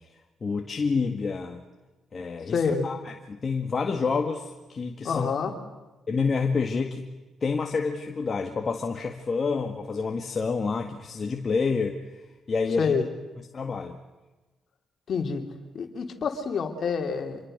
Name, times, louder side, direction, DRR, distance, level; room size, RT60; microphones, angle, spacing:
voice 1, 0.4-1.6 2.1-5.3 6.1-7.1 7.4-12.0 12.5-13.0 13.4-14.0, left 4 dB, 45° left, 3 dB, 1.9 m, -28 dB
voice 2, 2.5-2.9 5.0-5.5 12.8-13.0 15.1-15.4 15.7-17.4, left 5 dB, 60° left, 4 dB, 3.3 m, -27 dB
26.5 x 23.0 x 6.7 m, 1.1 s
supercardioid pair, 65°, 0 cm